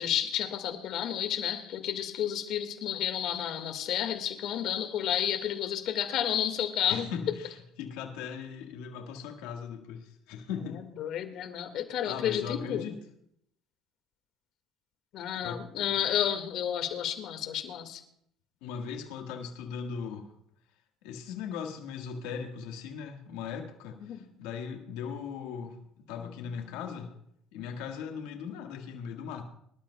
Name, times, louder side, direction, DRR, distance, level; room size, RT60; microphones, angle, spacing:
voice 1, 0.0-7.1 11.0-12.9 15.1-18.0 24.0-24.2, left 10 dB, 65° left, 1.8 m, -31 dB
voice 2, 6.9-10.9 12.0-12.9 15.4-15.6 15.8-15.9 18.6-20.3 21.0-27.1 27.5-29.4, left 6 dB, 90° left, 1.6 m, -39 dB
24.5 x 12.5 x 2.3 m
cardioid pair, 100°, 0 cm